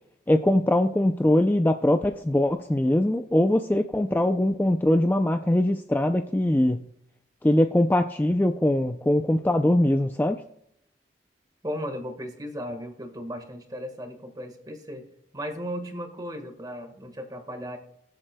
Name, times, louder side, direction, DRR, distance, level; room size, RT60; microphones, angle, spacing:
voice 1, 0.3-6.9 7.4-10.4, left 1 dB, 10° left, 7 dB, 0.4 m, -22 dB
voice 2, 11.6-15.1 15.3-17.8, equal, 20° right, 6 dB, 1.5 m, -36 dB
21.5 x 7.7 x 2.2 m, 0.75 s
head